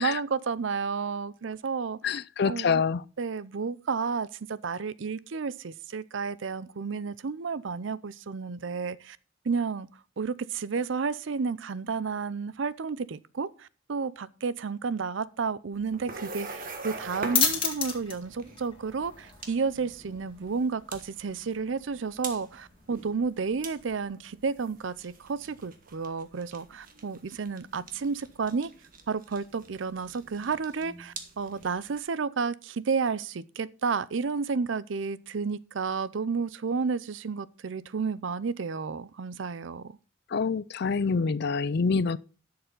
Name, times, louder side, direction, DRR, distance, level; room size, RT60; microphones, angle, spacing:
voice 1, 0.0-2.2 2.4-2.8 3.2-9.2 9.4-9.9 10.2-28.7 29.1-40.0, right 5 dB, 70° right, 0.5 m, -31 dB
voice 2, 2.0-3.0 40.3-42.2, left 5 dB, 55° left, 0.4 m, -26 dB
sound 1, 15.7-32.0, right 3 dB, 45° right, 1.4 m, -45 dB
sound 2, 16.7-24.0, left 7 dB, 25° left, 2.0 m, -35 dB
12.0 x 6.8 x 3.9 m
head